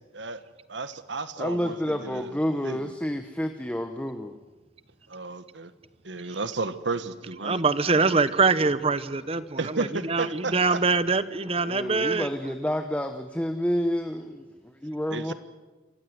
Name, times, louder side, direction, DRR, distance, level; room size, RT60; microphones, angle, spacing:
voice 1, 0.7-2.3 2.6-2.9 5.1-5.7 6.0-7.6 9.6-10.8 15.1-15.3, right 3 dB, 75° right, 1.3 m, -33 dB
voice 2, 1.4-4.4 11.4-15.3, equal, 5° left, 1.0 m, -29 dB
voice 3, 7.4-12.3, right 4 dB, 30° right, 0.9 m, -24 dB
27.0 x 15.0 x 9.6 m
head